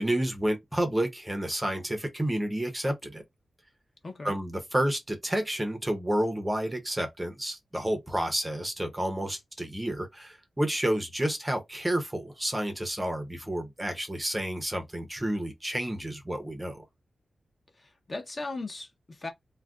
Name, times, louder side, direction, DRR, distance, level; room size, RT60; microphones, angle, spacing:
voice 1, 0.0-3.2 4.2-16.8, right 1 dB, 10° right, 0.6 m, -30 dB
voice 2, 4.0-4.4 17.7-19.3, left 2 dB, 30° left, 0.6 m, -38 dB
2.3 x 2.1 x 3.5 m
wide cardioid pair, 170°, 0 cm